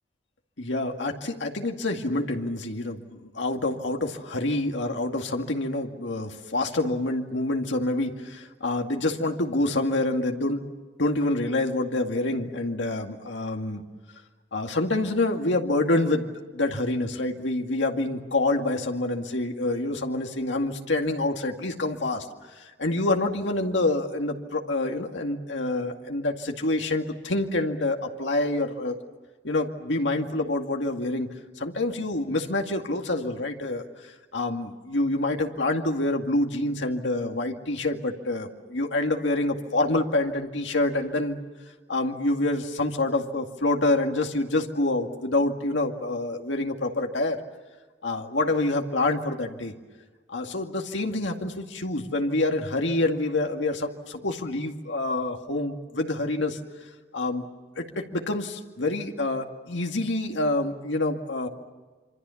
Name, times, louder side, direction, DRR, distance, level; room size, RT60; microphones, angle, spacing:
voice 1, 0.6-10.6 11.0-13.8 14.5-22.3 22.5-29.0 29.4-31.3 31.6-41.4 41.9-47.4 48.0-49.7 50.3-56.6 57.1-57.4 57.8-61.5, left 2 dB, 85° left, 3 dB, 2.2 m, -27 dB
26.5 x 25.5 x 7.1 m, 1.3 s
head